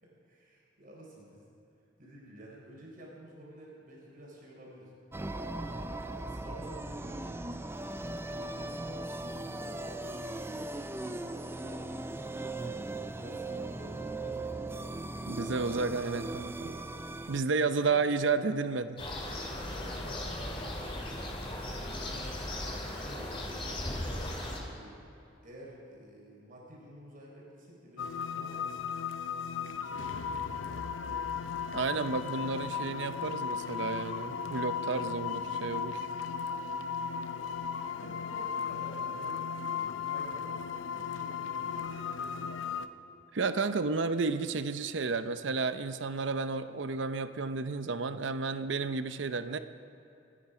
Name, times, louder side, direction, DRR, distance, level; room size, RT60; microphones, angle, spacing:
voice 1, 0.0-1.4 2.0-5.9 6.3-7.5 8.0-12.0 12.8-15.9 16.5-17.3 17.6-18.5 19.5-21.1 21.8-25.0 25.4-28.8 29.5-32.1 37.2-37.5 37.7-42.7, right 1 dB, 50° right, -4 dB, 4.3 m, -51 dB
sound 1, 5.1-17.4, right 2 dB, 15° right, 0.5 m, -38 dB
voice 2, 15.3-16.7 17.3-19.0 31.7-36.0 43.3-49.6, right 4 dB, 70° right, 11 dB, 0.7 m, -32 dB
sound 2, 19.0-24.6, left 1 dB, 30° left, 2.4 m, -37 dB
sound 3, 28.0-42.9, left 6 dB, 80° left, 0.6 m, -36 dB
28.0 x 10.0 x 4.9 m, 2.7 s
head